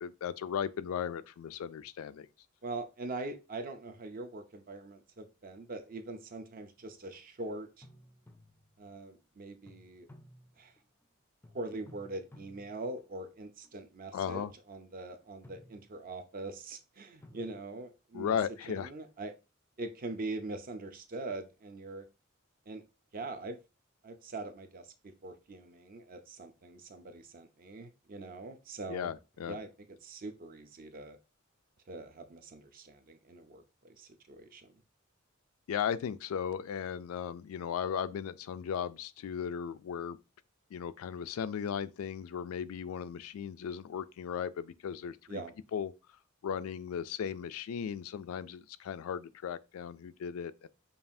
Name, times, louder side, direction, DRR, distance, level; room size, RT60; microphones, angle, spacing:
voice 1, 0.0-2.3 14.1-14.5 18.1-18.9 28.9-29.6 35.7-40.2 40.7-45.4 45.7-45.9 46.4-50.7, left 8 dB, 90° left, 0.3 m, -36 dB
voice 2, 2.6-7.9 8.8-10.1 10.6-10.7 11.5-18.4 18.7-19.3 19.8-22.1 22.7-22.8 23.1-23.6 24.0-29.1 29.4-29.7 30.0-31.2 31.9-34.7 45.3-45.5, right 2 dB, 45° right, 0.5 m, -42 dB
sound 1, 6.8-7.2 7.8-9.0 9.7-11.1 11.4-13.8 14.3-14.6 15.2-16.4 17.2-17.6, left 1 dB, 10° left, 0.4 m, -57 dB
5.4 x 2.4 x 2.6 m
head